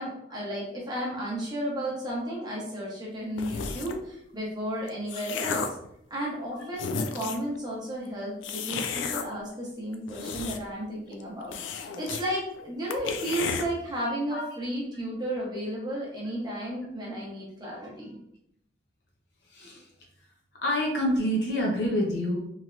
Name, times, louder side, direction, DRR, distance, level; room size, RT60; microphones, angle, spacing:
voice 1, 0.0-5.6 6.1-18.2, equal, 20° right, -5 dB, 0.8 m, -33 dB
sound 1, 3.4-4.0 4.7-5.9 6.4-6.5 6.7-7.5 8.4-9.3 9.9-10.8 11.1-11.2 11.5-12.3 12.6-12.7 12.9-13.7, left 6 dB, 75° left, 0.3 m, -33 dB
voice 2, 14.0-14.4 19.5-19.9 20.6-22.4, equal, 60° left, -2 dB, 0.8 m, -27 dB
3.1 x 2.7 x 2.5 m, 0.74 s
head